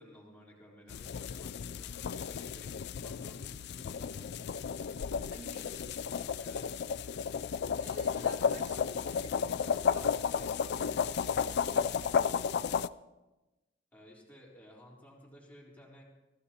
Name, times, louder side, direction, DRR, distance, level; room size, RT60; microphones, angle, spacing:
voice 1, 0.0-4.3 6.4-6.7 13.9-16.0, equal, 10° left, -4 dB, 3.7 m, -55 dB
sound 1, 0.9-12.9, left 6 dB, 60° left, 0.4 m, -33 dB
voice 2, 5.3-6.2 7.7-12.8, right 1 dB, 50° right, -2 dB, 3.6 m, -53 dB
24.5 x 15.5 x 2.9 m, 1.1 s
head